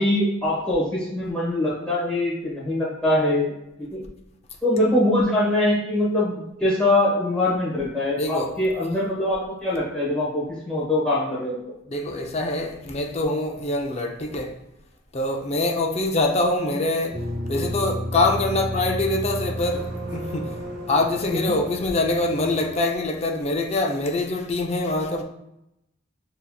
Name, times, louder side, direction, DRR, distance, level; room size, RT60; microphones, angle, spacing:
voice 1, 0.0-3.5 3.8-4.0 4.6-11.7 21.2-21.5, left 1 dB, 5° left, 1.1 m, -23 dB
voice 2, 8.2-8.5 11.9-14.5 15.1-17.2 17.5-25.2, left 2 dB, 30° left, 0.5 m, -24 dB
sound 1, 17.1-22.7, equal, 50° right, 1.0 m, -32 dB
6.3 x 2.8 x 2.3 m
head